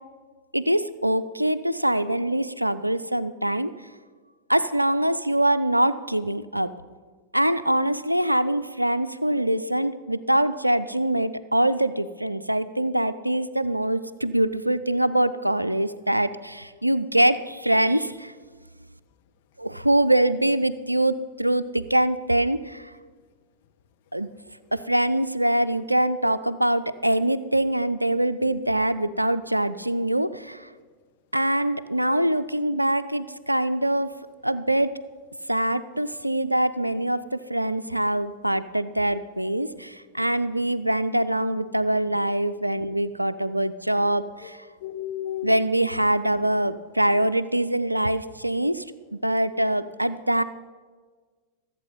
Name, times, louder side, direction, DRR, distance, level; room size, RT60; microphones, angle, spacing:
voice 1, 0.5-3.7 4.5-6.7 7.3-18.3 19.6-22.9 24.1-24.3 24.7-30.7 31.3-34.9 35.5-44.6 45.4-48.8 49.1-50.4, right 1 dB, 85° right, 15 dB, 0.4 m, -24 dB
voice 2, 44.8-45.5, left 12 dB, 50° left, 8 dB, 0.8 m, -33 dB
14.0 x 8.0 x 5.5 m, 1.5 s
figure-of-eight pair, 90°, 0 cm